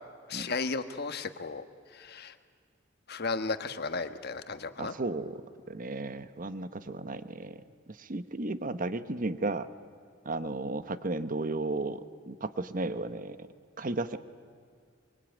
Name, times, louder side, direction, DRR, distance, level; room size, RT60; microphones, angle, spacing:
voice 1, 0.3-1.6 1.9-2.4 3.1-4.9, left 4 dB, 55° left, 9 dB, 1.4 m, -34 dB
voice 2, 4.8-5.4 5.7-9.7 10.2-13.4 13.8-14.2, right 2 dB, 45° right, 12 dB, 1.0 m, -34 dB
25.0 x 24.0 x 9.1 m, 2.2 s
head